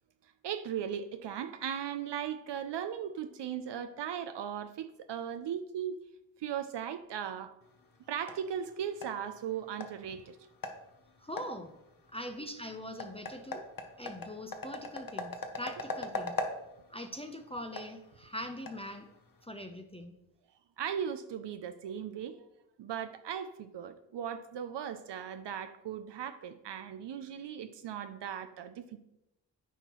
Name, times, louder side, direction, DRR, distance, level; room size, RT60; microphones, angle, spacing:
voice 1, 0.2-6.0 6.4-7.5 8.1-10.4 11.5-11.6 20.8-22.5 22.8-29.0, right 8 dB, 65° right, 9 dB, 0.5 m, -38 dB
sound 1, 7.6-19.4, left 3 dB, 45° left, 1.0 m, -42 dB
voice 2, 11.2-11.7 12.1-13.7 14.0-16.4 16.9-19.1 19.4-20.1, left 1 dB, 15° left, 5 dB, 0.6 m, -42 dB
9.0 x 4.4 x 3.0 m, 0.88 s
cardioid pair, 45°, 46 cm